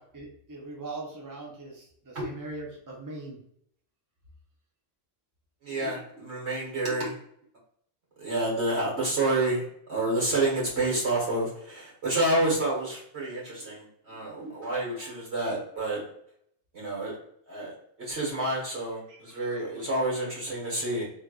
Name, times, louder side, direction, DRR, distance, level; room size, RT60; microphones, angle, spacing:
voice 1, 0.1-3.4 19.1-19.8, right 2 dB, 25° right, -2 dB, 0.5 m, -41 dB
voice 2, 5.6-7.2 8.2-9.6 9.9-16.0 16.7-17.2 17.5-17.7 18.0-21.0, right 2 dB, 85° right, -4 dB, 1.9 m, -29 dB
3.2 x 3.2 x 2.4 m, 0.67 s
omnidirectional pair, 1.1 m